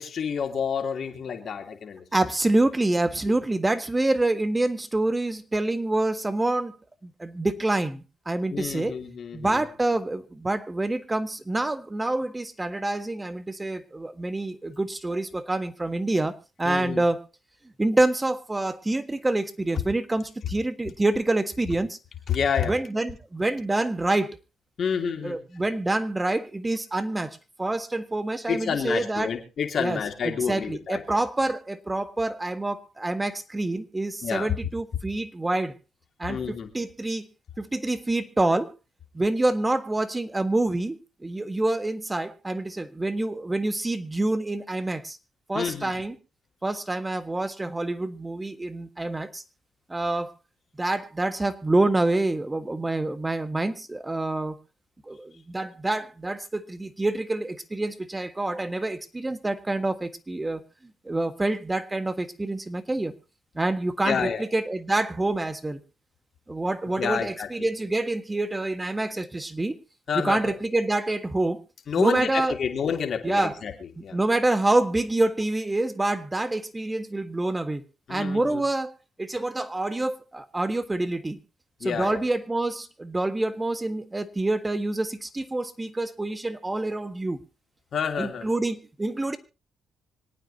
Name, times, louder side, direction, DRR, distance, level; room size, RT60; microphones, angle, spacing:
voice 1, 0.0-2.0 8.5-9.6 16.6-17.0 22.3-22.8 24.8-25.4 28.5-31.0 34.2-34.5 36.3-36.7 45.5-45.9 64.0-64.4 67.0-67.5 70.1-70.5 71.9-73.7 74.0-74.2 78.1-78.6 81.8-82.2 87.9-88.5, left 7 dB, 60° left, 3 dB, 2.9 m, -29 dB
voice 2, 2.1-6.7 7.0-9.0 9.3-17.2 17.8-22.0 22.6-24.3 25.0-29.3 29.8-35.7 36.2-37.2 37.6-38.7 39.1-45.2 45.5-46.2 46.6-49.4 49.9-50.3 50.8-54.6 55.1-60.6 61.0-63.1 63.5-65.8 66.5-69.8 70.2-71.6 72.0-72.6 73.2-73.6 74.0-77.8 78.1-78.9 79.2-81.4 81.8-87.4 88.2-89.4, right 2 dB, 20° right, 10 dB, 1.5 m, -27 dB
26.0 x 9.1 x 2.8 m, 0.30 s
supercardioid pair, 60°, 0 cm